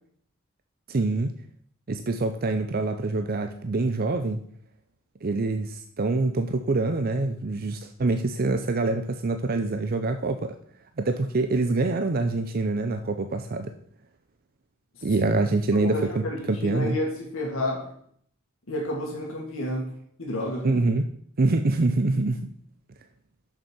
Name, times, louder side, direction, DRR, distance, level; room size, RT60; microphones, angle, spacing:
voice 1, 0.9-1.3 1.9-4.4 5.2-10.5 11.0-13.7 15.0-17.0 20.6-21.1 21.4-22.4, right 3 dB, 45° right, 7 dB, 0.6 m, -25 dB
voice 2, 15.7-17.9 18.7-19.9 20.2-20.8, left 1 dB, 80° left, -2 dB, 2.0 m, -30 dB
6.8 x 6.5 x 6.2 m, 0.62 s
head